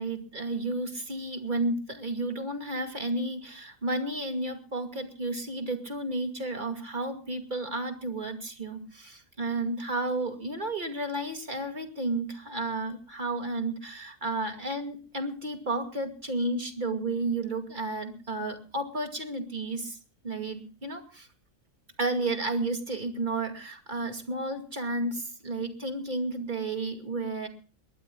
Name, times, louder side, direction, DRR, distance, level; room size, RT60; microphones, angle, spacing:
voice 1, 0.0-20.0 20.2-21.3 22.0-27.5, right 2 dB, 30° right, 5 dB, 2.4 m, -32 dB
22.5 x 19.5 x 2.3 m, 0.35 s
omnidirectional pair, 1.6 m